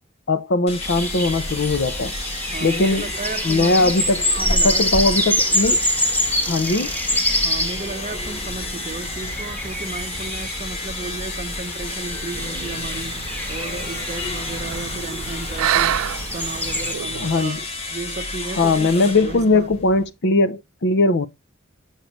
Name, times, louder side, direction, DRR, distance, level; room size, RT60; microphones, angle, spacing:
voice 1, 0.3-2.1 2.6-3.1 3.4-4.3 4.6-5.8 6.5-6.9 17.1-17.6 18.6-21.3, left 2 dB, 55° left, 0.6 m, -19 dB
sound 1, 0.7-20.1, left 2 dB, 30° left, 1.3 m, -32 dB
sound 2, 0.8-16.9, equal, 10° left, 1.1 m, -26 dB
voice 2, 2.5-4.0 4.3-5.2 7.3-16.1 16.3-19.8, right 3 dB, 35° right, 0.7 m, -34 dB
sound 3, 12.3-17.3, right 11 dB, 75° right, 0.3 m, -28 dB
6.5 x 6.4 x 3.1 m
head